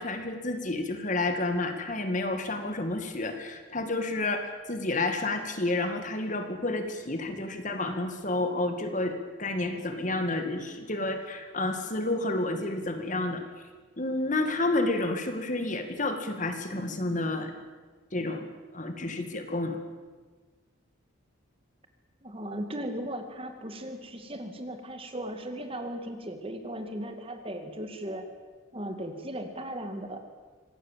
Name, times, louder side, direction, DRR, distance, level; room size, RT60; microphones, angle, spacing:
voice 1, 0.0-13.4 14.0-17.5 18.1-18.5 18.7-19.8, left 2 dB, 35° left, 6 dB, 2.1 m, -30 dB
voice 2, 22.2-28.2 28.7-30.2, right 1 dB, 25° right, 6 dB, 2.1 m, -37 dB
25.5 x 19.0 x 7.5 m, 1.4 s
head